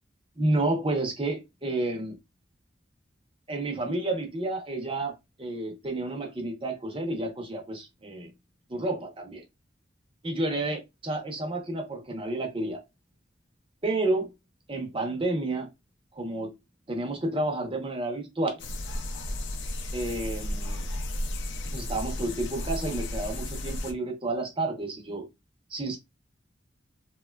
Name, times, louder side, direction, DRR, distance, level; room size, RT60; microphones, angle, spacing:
voice 1, 0.4-2.1 3.5-5.1 5.4-8.3 8.7-9.4 10.2-12.8 13.8-14.3 14.7-15.7 16.2-16.5 16.9-18.6 19.9-20.8 21.7-25.2 25.7-26.0, right 2 dB, 30° right, 0.6 m, -30 dB
sound 1, 18.6-23.9, left 1 dB, 70° left, 0.5 m, -33 dB
3.0 x 2.2 x 2.2 m
head